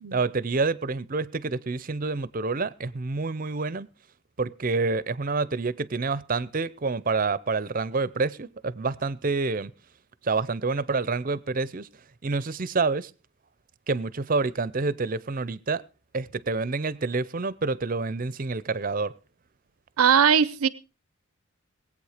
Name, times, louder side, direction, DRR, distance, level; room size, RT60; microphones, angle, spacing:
voice 1, 0.1-3.9 4.4-9.7 10.2-11.9 12.2-13.1 13.9-15.8 16.1-19.1, right 3 dB, 40° right, 0.6 m, -28 dB
voice 2, 20.0-20.7, right 7 dB, 85° right, 0.6 m, -20 dB
20.5 x 8.6 x 5.0 m
head